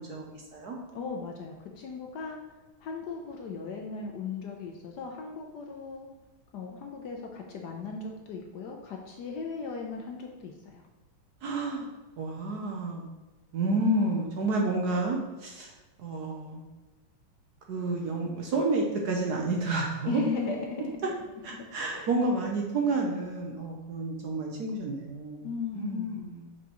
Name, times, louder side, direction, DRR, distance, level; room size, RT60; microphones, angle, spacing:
voice 1, 0.0-0.8 11.4-11.9 12.2-13.0 13.5-15.7 16.0-16.6 17.7-20.2 21.4-25.5 25.7-26.5, right 2 dB, 65° right, 0 dB, 1.1 m, -30 dB
voice 2, 0.9-2.4 2.8-6.1 6.5-10.8 20.0-21.0 21.5-21.6 21.9-22.1 25.4-26.2, left 5 dB, 65° left, 1 dB, 1.1 m, -37 dB
6.2 x 5.7 x 3.0 m, 1.2 s
omnidirectional pair, 2.2 m